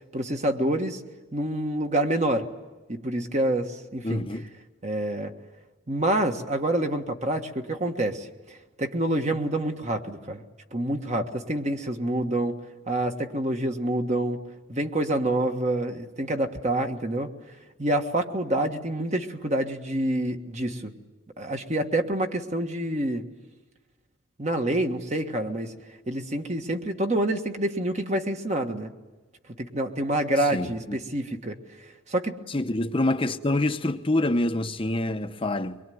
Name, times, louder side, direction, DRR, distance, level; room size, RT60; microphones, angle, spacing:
voice 1, 0.1-1.0 1.3-2.5 2.9-4.2 4.8-5.3 5.9-10.4 10.7-12.6 12.9-14.4 14.7-17.3 17.8-20.9 21.4-23.3 24.4-25.7 26.1-28.9 29.6-31.6 32.1-32.4, right 1 dB, 35° right, 1.5 m, -27 dB
voice 2, 4.0-4.4 30.5-31.0 32.5-35.8, left 1 dB, 25° left, 0.9 m, -26 dB
24.0 x 22.0 x 9.4 m
head